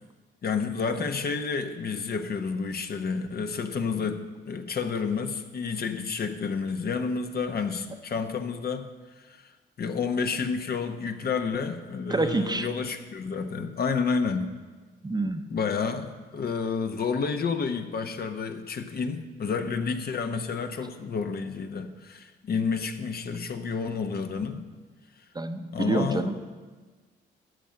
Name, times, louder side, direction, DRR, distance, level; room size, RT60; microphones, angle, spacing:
voice 1, 0.4-8.9 9.2-9.5 9.8-14.5 15.5-24.7 25.7-26.3, left 5 dB, 50° left, 1.0 m, -30 dB
voice 2, 12.1-12.7 15.0-15.4 25.3-26.4, right 2 dB, 20° right, 0.9 m, -27 dB
12.5 x 5.7 x 7.7 m
supercardioid pair, 65°, 21 cm